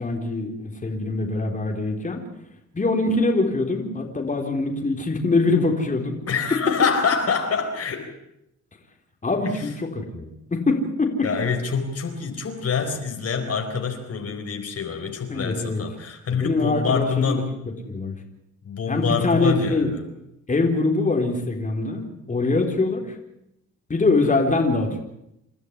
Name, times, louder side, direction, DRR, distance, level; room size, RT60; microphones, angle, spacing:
voice 1, 0.0-2.2 2.7-6.2 9.2-11.3 15.3-15.8 16.4-18.2 18.9-19.9 20.5-23.2 23.9-25.0, left 3 dB, 25° left, 2 dB, 4.2 m, -23 dB
voice 2, 6.3-8.1 11.2-17.5 18.6-20.1, left 5 dB, 55° left, 5 dB, 4.4 m, -26 dB
29.0 x 12.5 x 9.8 m, 0.83 s
cardioid pair, 90°, 30 cm